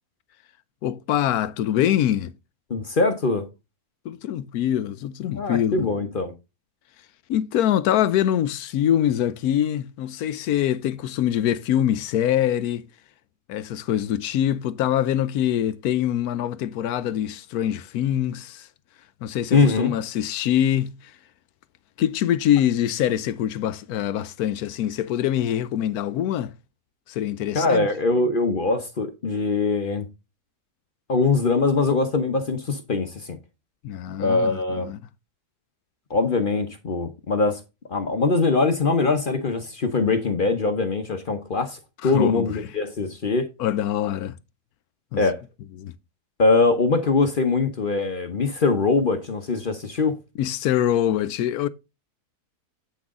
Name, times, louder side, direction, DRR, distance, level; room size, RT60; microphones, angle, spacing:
voice 1, 0.8-2.3 4.0-5.9 7.3-12.8 13.5-18.7 19.2-21.1 22.0-26.5 27.1-27.9 33.8-35.1 42.0-42.6 43.6-44.4 45.1-45.3 45.8-45.9 50.4-51.7, left 11 dB, 75° left, 1.1 m, -24 dB
voice 2, 2.7-3.5 5.4-6.3 19.5-19.9 27.5-30.1 31.1-33.4 34.2-34.9 36.1-37.6 37.9-43.5 45.2-45.4 46.4-50.2, left 3 dB, 40° left, 0.9 m, -22 dB
8.6 x 6.1 x 3.6 m
omnidirectional pair, 1.7 m